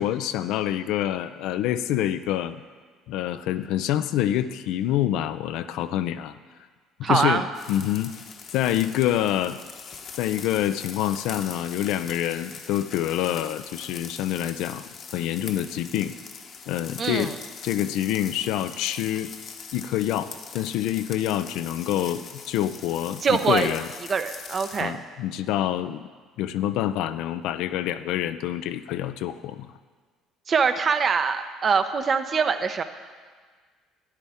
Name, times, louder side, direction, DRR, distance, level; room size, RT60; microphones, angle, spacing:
voice 1, 0.0-2.6 3.1-6.4 7.0-8.1 8.5-9.6 10.2-14.8 15.1-16.1 16.7-17.3 17.6-19.3 19.7-23.9 24.8-26.1 26.4-29.7, left 12 dB, 70° left, 11 dB, 0.4 m, -26 dB
voice 2, 7.0-7.5 17.0-17.4 23.2-23.7 24.1-25.0 30.5-32.8, right 5 dB, 45° right, 9 dB, 0.8 m, -23 dB
sound 1, 7.5-24.8, left 5 dB, 50° left, 1.1 m, -42 dB
12.5 x 10.0 x 3.6 m, 1.5 s
hypercardioid pair, 65°, 0 cm